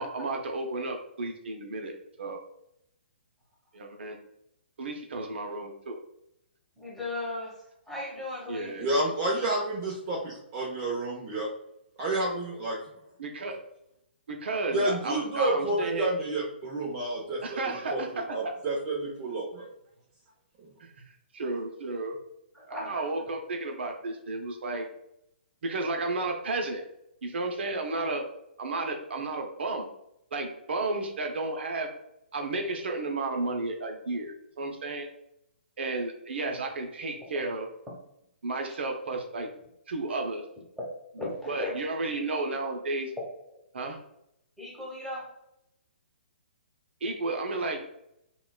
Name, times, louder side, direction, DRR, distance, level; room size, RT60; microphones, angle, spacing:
voice 1, 0.0-1.9 2.2-2.4 3.7-4.2 4.8-6.0 8.5-8.9 13.2-13.6 14.3-16.1 17.4-18.5 20.8-20.9 21.3-22.2 22.7-24.8 25.6-26.8 27.2-28.2 28.6-29.9 30.3-31.9 32.3-35.1 35.8-37.7 38.4-39.5 39.9-40.4 41.5-43.1 43.7-44.0 47.0-47.8, right 2 dB, 70° right, 3 dB, 0.7 m, -32 dB
voice 2, 6.8-8.9 22.5-23.1 37.3-37.4 40.8-40.9 41.1-41.7 42.1-42.5 44.6-45.3, left 2 dB, ahead, -6 dB, 1.2 m, -37 dB
voice 3, 8.8-11.5 12.0-12.8 14.7-18.0 18.3-19.7 20.6-20.7, right 1 dB, 30° right, -4 dB, 0.7 m, -30 dB
5.8 x 2.3 x 2.3 m, 0.78 s
hypercardioid pair, 140°, 6 cm